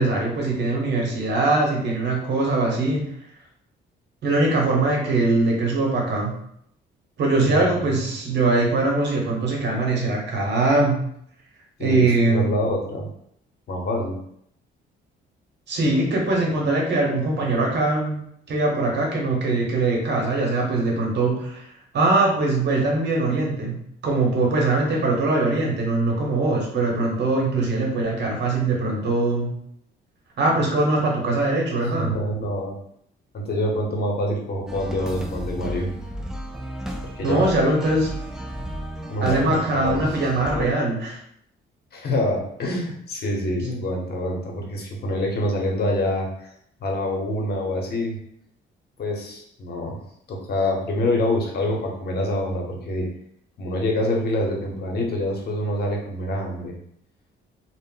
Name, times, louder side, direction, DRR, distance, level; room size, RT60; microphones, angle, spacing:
voice 1, 0.0-3.0 4.2-6.3 7.2-11.0 11.8-12.5 15.7-18.2 18.5-21.7 21.9-23.8 24.0-29.5 30.4-32.2 37.2-38.2 39.2-41.2, right 2 dB, 60° right, -1 dB, 0.9 m, -22 dB
voice 2, 11.8-13.1 13.7-14.2 31.8-32.7 33.3-35.9 37.2-37.4 39.1-40.0 40.5-40.7 41.9-46.5 46.8-48.2 49.0-50.0 50.3-53.1 53.6-56.7, left 1 dB, 55° left, 0 dB, 0.8 m, -26 dB
sound 1, 34.7-40.7, right 1 dB, 5° right, 0.3 m, -34 dB
2.1 x 2.0 x 3.7 m, 0.70 s
cardioid pair, 90°, 20 cm